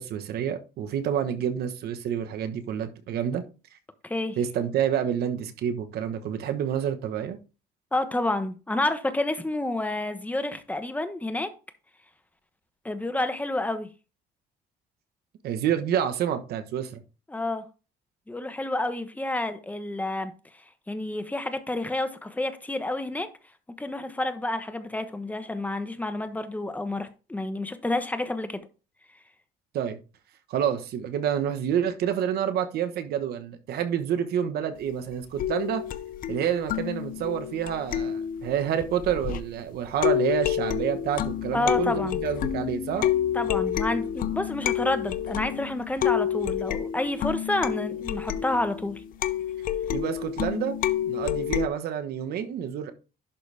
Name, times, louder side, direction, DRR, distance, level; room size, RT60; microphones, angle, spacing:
voice 1, 0.0-3.4 4.4-7.4 15.4-17.0 29.7-30.0 30.5-35.8 36.3-43.1 49.9-50.8 51.1-52.9, right 9 dB, 70° right, 1.2 m, -28 dB
voice 2, 4.0-4.4 7.9-11.5 12.8-13.9 17.3-17.6 18.3-20.3 20.9-23.3 23.8-28.7 41.5-42.2 43.3-49.0, left 2 dB, 10° left, 1.0 m, -29 dB
sound 1, 35.4-39.6 40.0-51.7, left 10 dB, 55° left, 0.6 m, -29 dB
11.5 x 4.0 x 3.4 m
cardioid pair, 110°, 17 cm